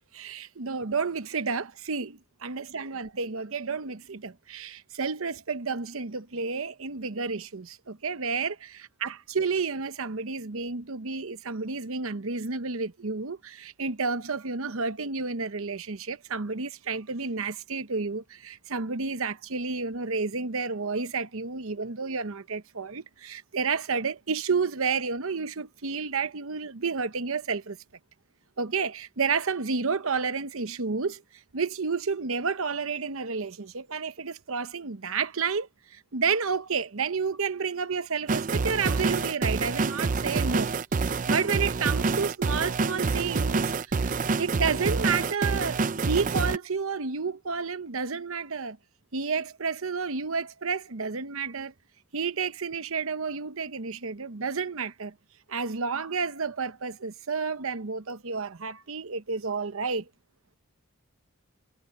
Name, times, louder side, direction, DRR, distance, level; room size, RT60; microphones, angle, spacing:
voice 1, 0.1-27.8 28.6-31.2 31.5-40.7 41.0-48.8 49.1-51.7 52.1-55.1 55.5-60.1, right 5 dB, 70° right, 0.9 m, -31 dB
sound 1, 38.3-46.6, right 4 dB, 35° right, 0.4 m, -27 dB
head